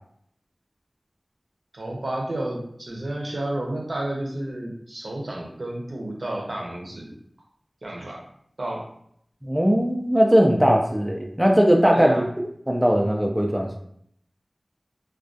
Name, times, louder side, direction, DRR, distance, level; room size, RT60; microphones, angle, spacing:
voice 1, 1.7-7.1 7.8-8.3 8.6-8.9 11.9-12.3, right 1 dB, 70° right, -1 dB, 0.5 m, -31 dB
voice 2, 9.4-12.2 12.7-13.8, equal, 15° right, 1 dB, 0.3 m, -19 dB
2.3 x 2.2 x 2.5 m, 0.68 s
wide cardioid pair, 45°, 0 cm